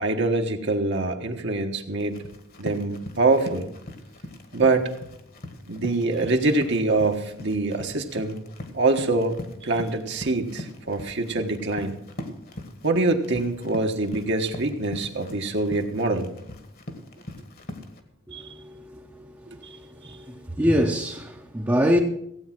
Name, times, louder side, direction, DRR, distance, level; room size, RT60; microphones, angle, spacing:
voice 1, 0.0-2.2 2.6-3.7 4.5-4.9 5.7-8.4 8.7-12.0 12.8-16.3 18.3-18.4 19.6-19.8 20.0-20.2, right 2 dB, 60° right, 1.4 m, -24 dB
Run, 2.0-18.0, left 1 dB, 50° left, 1.6 m, -40 dB
voice 2, 18.3-19.0 20.1-22.0, equal, 15° right, 0.9 m, -24 dB
16.0 x 8.6 x 6.0 m
head